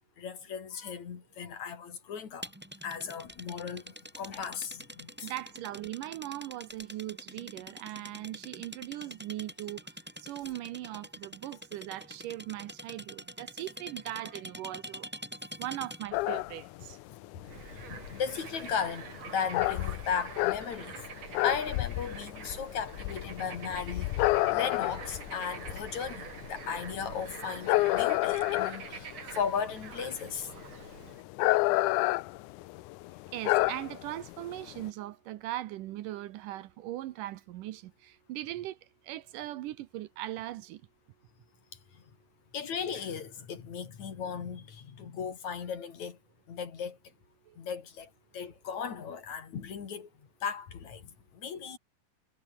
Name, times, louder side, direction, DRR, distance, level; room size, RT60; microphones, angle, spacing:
voice 1, 0.2-2.5 2.8-5.3 17.3-21.1 21.4-30.5 41.9-42.0 42.5-46.2 46.5-47.0 47.6-50.1 50.4-51.8, left 7 dB, 55° left, 3.9 m, -36 dB
sound 1, 2.4-16.2, equal, 5° right, 4.7 m, -45 dB
voice 2, 5.2-9.8 10.2-15.1 15.6-17.0 33.3-38.8 39.0-40.8 47.5-47.6, right 14 dB, 75° right, 2.3 m, -39 dB
sound 2, 16.1-34.9, left 20 dB, 80° left, 1.8 m, -31 dB
Bird / Frog, 17.4-31.2, right 7 dB, 50° right, 3.7 m, -46 dB
omnidirectional pair, 4.0 m